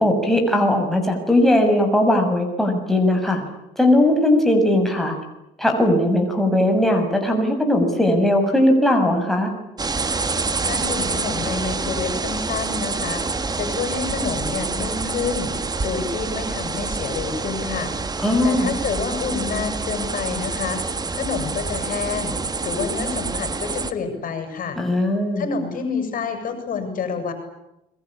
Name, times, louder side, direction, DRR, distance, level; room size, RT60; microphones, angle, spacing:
voice 1, 0.0-3.4 3.8-5.1 5.6-9.5 18.2-18.7 24.8-25.4, left 1 dB, ahead, 2 dB, 6.8 m, -18 dB
sound 1, 9.8-23.9, right 4 dB, 25° right, 1.9 m, -27 dB
voice 2, 10.7-13.2 13.5-15.5 15.8-17.9 18.4-20.8 21.1-22.4 22.6-24.8 25.4-27.3, left 5 dB, 55° left, 7 dB, 7.4 m, -28 dB
29.5 x 23.0 x 8.8 m, 0.89 s
cardioid pair, 110°, 17 cm